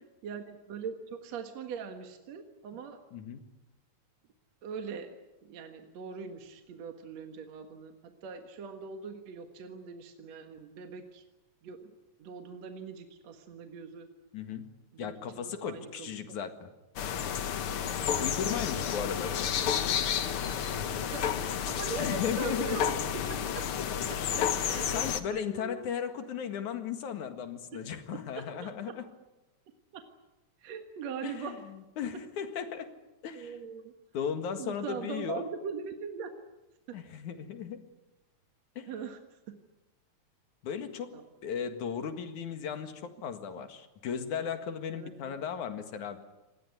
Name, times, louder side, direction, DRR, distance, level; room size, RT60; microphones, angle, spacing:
voice 1, 0.2-3.0 4.6-5.2 5.4-11.2 11.6-11.9 12.2-14.1 14.9-16.4 18.1-18.3 18.7-19.2 21.0-22.9 23.3-23.4 24.1-24.2 24.6-25.8 27.7-27.8 28.1-28.2 28.6-28.7 29.9-30.0 30.6-31.6 33.3-33.9 34.6-36.3 36.9-37.0 38.9-39.6 41.1-41.2 43.6-43.7 44.9-45.4, right 6 dB, 65° right, 5 dB, 2.7 m, -41 dB
voice 2, 3.1-3.4 14.3-14.7 15.0-16.7 18.2-19.5 22.0-22.8 24.4-24.7 24.9-29.0 31.2-31.5 32.0-32.9 33.2-33.5 34.1-35.5 36.9-37.8 38.8-38.9 40.6-46.2, left 7 dB, 85° left, 8 dB, 3.3 m, -36 dB
sound 1, 17.0-25.2, left 8 dB, 55° left, 1.8 m, -31 dB
26.5 x 19.5 x 9.7 m, 1.0 s
omnidirectional pair, 3.3 m